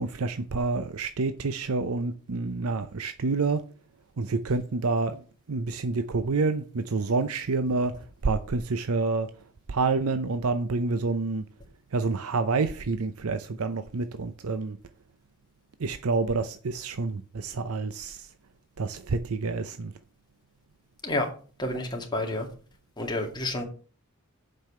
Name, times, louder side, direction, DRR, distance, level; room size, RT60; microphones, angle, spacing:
voice 1, 0.0-3.6 4.2-9.4 9.7-11.4 11.9-14.8 15.8-18.3 18.8-19.9, right 3 dB, 85° right, 0.6 m, -28 dB
voice 2, 21.6-22.5 23.0-23.6, left 1 dB, 20° left, 2.2 m, -29 dB
7.5 x 5.4 x 6.7 m
head